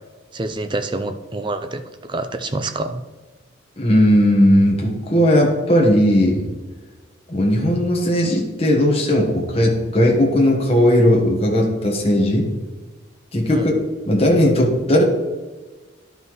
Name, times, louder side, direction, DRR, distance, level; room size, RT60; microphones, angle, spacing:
voice 1, 0.3-3.0 13.5-13.7, right 2 dB, 25° right, 8 dB, 0.4 m, -26 dB
voice 2, 3.8-6.5 7.3-12.5 13.3-13.7 14.1-15.0, equal, 30° left, -1 dB, 1.3 m, -17 dB
11.5 x 5.4 x 3.1 m, 1.3 s
head